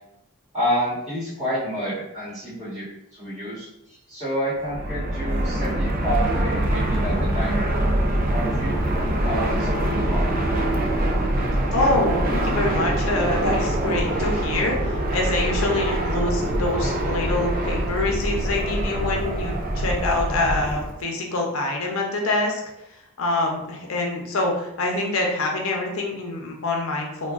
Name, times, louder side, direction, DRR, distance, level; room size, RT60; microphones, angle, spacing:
voice 1, 0.5-2.9 3.1-3.7 4.1-7.7 8.3-8.8 9.2-10.5, equal, 25° right, -9 dB, 1.0 m, -29 dB
Fixed-wing aircraft airplane, 4.6-21.0, right 1 dB, 40° right, 0.4 m, -24 dB
voice 2, 11.7-22.6 23.2-27.3, left 2 dB, 80° left, 0 dB, 0.6 m, -25 dB
3.6 x 2.2 x 2.4 m, 0.84 s
head